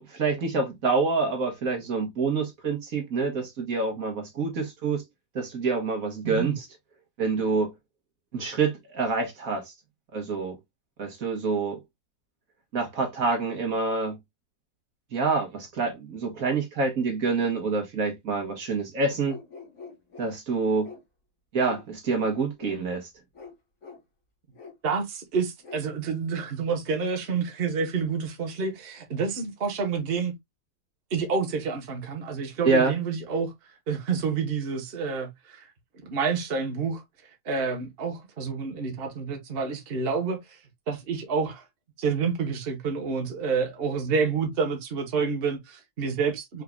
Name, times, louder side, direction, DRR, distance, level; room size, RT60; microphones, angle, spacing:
voice 1, 0.0-5.0 5.4-6.7 7.2-7.7 8.3-9.6 10.1-10.6 11.0-11.8 12.7-14.2 15.1-19.4 20.2-20.9 21.5-23.1 32.7-32.9, right 4 dB, 60° right, 1.7 m, -27 dB
voice 2, 6.2-6.6 24.8-30.3 31.1-33.5 33.9-35.7 36.0-37.0 37.4-40.6 40.9-41.6 42.0-46.6, right 5 dB, 40° right, 1.3 m, -28 dB
sound 1, 19.3-20.3 20.8-21.0 21.6-21.8 22.6-22.8 23.3-23.5 23.8-24.0 24.5-24.7 25.6-25.8, left 4 dB, 45° left, 2.2 m, -43 dB
5.1 x 3.7 x 2.2 m
omnidirectional pair, 1.8 m